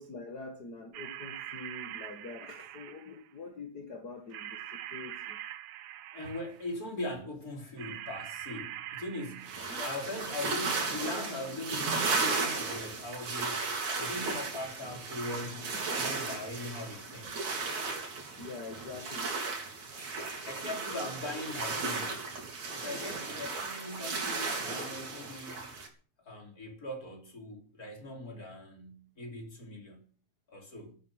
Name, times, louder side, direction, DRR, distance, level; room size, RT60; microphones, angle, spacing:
voice 1, 0.0-5.4 9.7-9.9 14.2-14.4 18.3-19.4, left 3 dB, 45° left, 1.4 m, -45 dB
sound 1, 0.9-3.3 4.3-6.7 7.8-9.6, right 12 dB, 85° right, 1.4 m, -43 dB
voice 2, 6.1-17.5 20.4-22.4 22.7-25.7 26.2-30.1 30.5-31.0, left 2 dB, 25° left, 3.8 m, -41 dB
sound 2, 9.5-25.9, right 4 dB, 55° right, 4.7 m, -35 dB
12.5 x 12.0 x 7.7 m
omnidirectional pair, 4.0 m